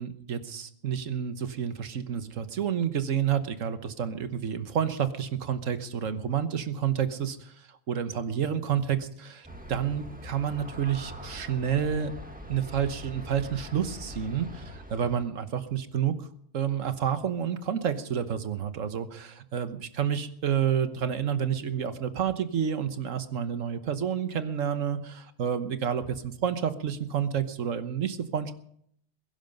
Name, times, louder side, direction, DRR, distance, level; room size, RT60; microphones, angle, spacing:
voice 1, 0.0-7.5 7.9-12.1 12.5-16.3 16.5-28.5, right 8 dB, 80° right, 10 dB, 1.5 m, -29 dB
Aircraft, 9.4-15.2, equal, 5° right, 1.8 m, -43 dB
22.0 x 11.0 x 5.3 m, 0.67 s
omnidirectional pair, 1.3 m